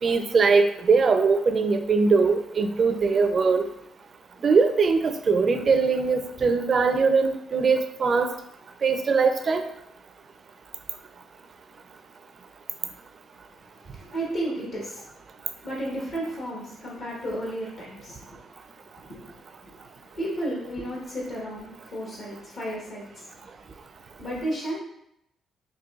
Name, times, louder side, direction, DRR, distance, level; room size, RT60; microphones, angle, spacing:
voice 1, 0.0-3.6 4.4-8.3 8.8-9.6, right 4 dB, 45° right, 7 dB, 0.4 m, -21 dB
voice 2, 13.8-15.1 15.6-18.4 19.0-19.8 20.1-23.3 24.2-24.8, right 1 dB, 60° left, -5 dB, 1.3 m, -33 dB
5.2 x 2.6 x 2.4 m, 0.78 s
cardioid pair, 90°, 0 cm